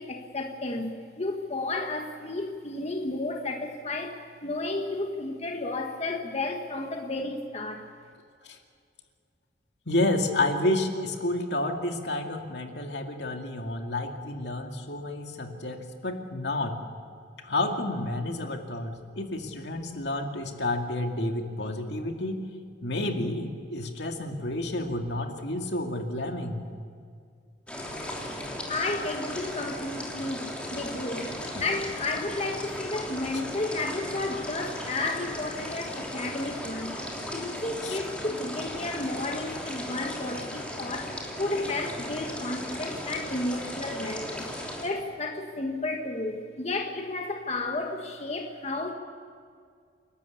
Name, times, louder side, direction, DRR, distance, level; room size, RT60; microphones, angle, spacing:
voice 1, 0.0-7.9 28.7-36.9 37.3-44.4 44.8-48.9, left 2 dB, 35° left, 3 dB, 1.6 m, -32 dB
voice 2, 9.9-16.8 17.4-22.5 22.8-26.7 31.2-31.6 37.8-38.0, left 1 dB, 75° left, 3 dB, 2.3 m, -30 dB
sound 1, 27.7-44.8, left 1 dB, 5° left, 3.2 m, -36 dB
29.0 x 13.0 x 8.4 m, 2.2 s
head